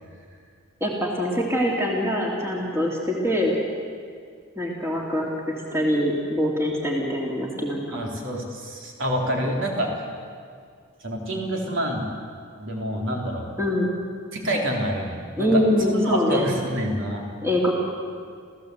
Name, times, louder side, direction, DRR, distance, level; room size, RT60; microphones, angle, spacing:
voice 1, 0.8-3.6 4.6-8.1 13.6-13.9 15.4-16.5 17.4-17.7, equal, 10° right, -2 dB, 2.7 m, -24 dB
voice 2, 7.9-9.9 11.0-12.1 12.6-13.5 14.3-17.3, equal, 60° right, 0 dB, 3.8 m, -27 dB
29.5 x 15.0 x 8.1 m, 2.2 s
head